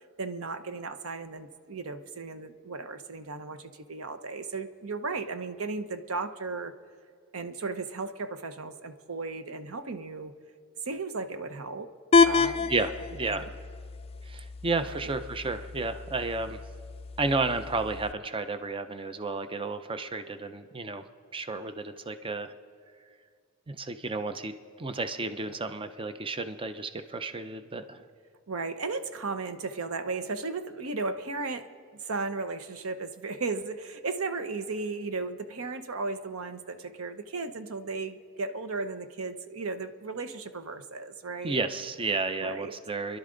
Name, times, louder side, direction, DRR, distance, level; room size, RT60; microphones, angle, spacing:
voice 1, 0.2-6.7 7.3-10.3 10.9-11.9 12.2-12.7 13.3-13.5 14.9-15.1 28.5-31.7 32.0-41.6 42.4-42.8, right 3 dB, 85° right, 9 dB, 0.8 m, -35 dB
sound 1, 12.1-18.1, left 4 dB, 30° left, 0.4 m, -28 dB
voice 2, 12.7-13.5 14.3-16.6 17.2-21.0 21.3-22.5 23.7-24.5 24.8-28.0 41.4-43.2, right 3 dB, 25° right, 9 dB, 0.5 m, -32 dB
29.5 x 11.5 x 3.9 m, 2.1 s
head